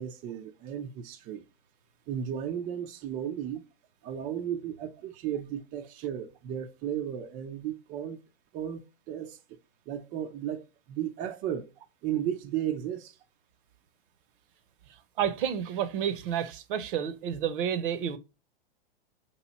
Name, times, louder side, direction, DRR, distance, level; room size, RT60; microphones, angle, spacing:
voice 1, 0.0-1.4 2.1-3.6 4.0-8.2 8.5-9.4 9.9-11.7 12.0-13.2, right 10 dB, 25° right, 0.4 m, -34 dB
voice 2, 15.2-18.2, right 9 dB, 60° right, 0.7 m, -30 dB
5.2 x 2.9 x 2.9 m
hypercardioid pair, 120°, 30 cm